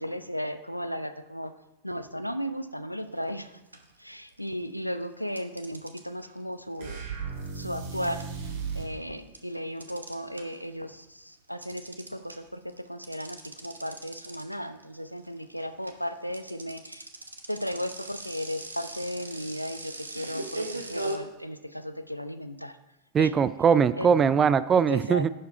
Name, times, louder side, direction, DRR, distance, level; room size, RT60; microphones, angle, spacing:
voice 1, 0.0-1.5 1.8-3.6 4.0-7.0 7.5-8.2 8.7-17.1 17.5-22.8 23.2-23.3 24.0-24.3 24.9-25.3, equal, 90° left, 11 dB, 0.5 m, -35 dB
sound 1, 3.1-3.4 3.7-4.7 5.4-10.7 11.0-21.2, right 2 dB, 80° right, 0.8 m, -40 dB
sound 2, 6.8-9.0, right 5 dB, 55° right, 2.2 m, -35 dB
voice 2, 23.1-25.3, right 6 dB, 25° right, 16 dB, 0.3 m, -21 dB
11.0 x 4.8 x 4.6 m, 0.97 s
figure-of-eight pair, 90°, 0 cm